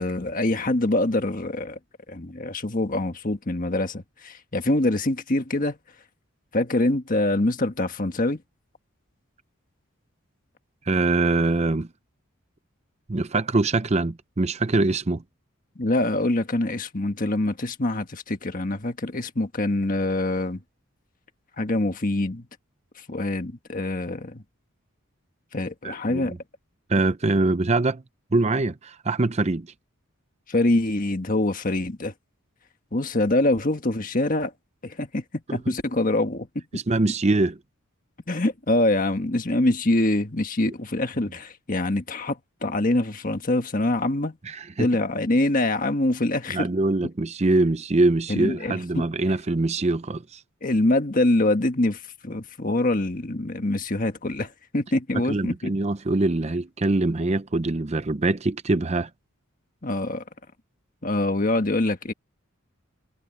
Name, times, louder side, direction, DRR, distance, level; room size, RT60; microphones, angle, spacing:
voice 1, 0.0-1.8 2.1-5.8 6.5-8.4 15.8-20.6 21.6-22.5 23.1-24.4 25.5-26.3 30.5-32.1 32.9-34.5 34.8-35.2 35.5-36.5 36.7-36.8 38.3-44.4 44.8-46.7 48.3-49.1 50.6-55.7 59.8-60.2 61.0-62.1, left 2 dB, 40° left, 1.5 m, -24 dB
voice 2, 10.9-11.9 13.1-15.2 25.8-26.4 26.9-28.0 28.3-29.7 35.5-35.7 36.7-37.6 44.4-44.9 46.5-50.4 55.1-59.1, right 2 dB, 30° right, 0.6 m, -23 dB
head